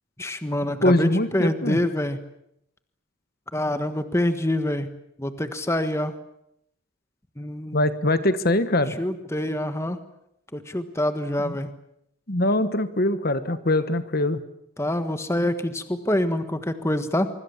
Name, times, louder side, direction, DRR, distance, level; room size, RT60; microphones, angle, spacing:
voice 1, 0.2-2.2 3.5-4.9 5.2-6.1 7.4-7.8 9.0-10.0 10.5-11.7 14.8-17.3, left 1 dB, 15° left, 9 dB, 1.5 m, -26 dB
voice 2, 0.8-1.8 7.7-9.0 11.4-11.6 12.3-14.4, left 1 dB, 45° left, 12 dB, 1.4 m, -22 dB
25.0 x 24.5 x 7.3 m, 0.77 s
head